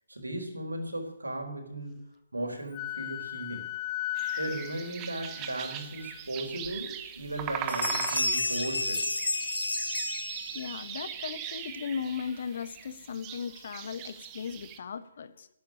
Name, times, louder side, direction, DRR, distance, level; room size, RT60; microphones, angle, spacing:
voice 1, 0.1-1.9 2.3-3.7 4.3-9.1, right 1 dB, 75° right, 4 dB, 4.2 m, -36 dB
Wind instrument woodwind instrument, 2.7-6.2, left 14 dB, 20° left, 0.8 m, -37 dB
sound 1, 4.2-14.8, right 10 dB, 20° right, 1.1 m, -40 dB
sound 2, 6.6-6.7 7.2-7.4 7.7-10.8, left 1 dB, 70° left, 3.7 m, -31 dB
voice 2, 10.5-15.5, left 6 dB, 45° left, 13 dB, 1.2 m, -37 dB
12.0 x 9.4 x 10.0 m, 0.85 s
figure-of-eight pair, 140°, 0 cm